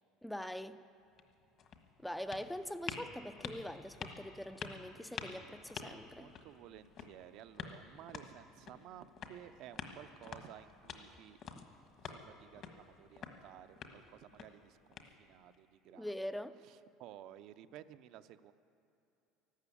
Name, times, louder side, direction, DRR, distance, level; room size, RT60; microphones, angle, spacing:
voice 1, 0.2-0.8 2.0-6.3 15.9-16.5, equal, 5° left, 12 dB, 0.4 m, -43 dB
sound 1, 1.0-15.6, left 6 dB, 45° left, 1.4 m, -50 dB
voice 2, 6.1-11.4 12.0-18.5, right 12 dB, 60° right, 11 dB, 0.6 m, -55 dB
14.0 x 12.5 x 8.4 m, 2.8 s
cardioid pair, 135°, 0 cm